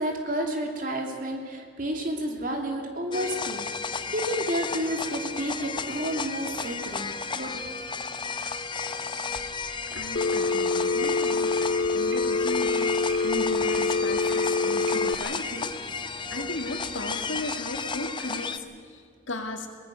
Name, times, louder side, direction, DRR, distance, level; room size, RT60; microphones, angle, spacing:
voice 1, 0.0-7.1 7.3-7.6, right 1 dB, 45° right, 3 dB, 2.9 m, -31 dB
sound 1, 3.1-18.6, left 5 dB, 25° left, 0.7 m, -33 dB
sound 2, 9.2-17.7, right 3 dB, 65° right, 3.3 m, -48 dB
voice 2, 9.9-19.0 19.3-19.7, left 2 dB, 80° left, 4 dB, 2.4 m, -36 dB
Telephone, 10.2-15.2, left 3 dB, 60° left, 0.7 m, -25 dB
23.5 x 19.0 x 6.5 m, 2.1 s
head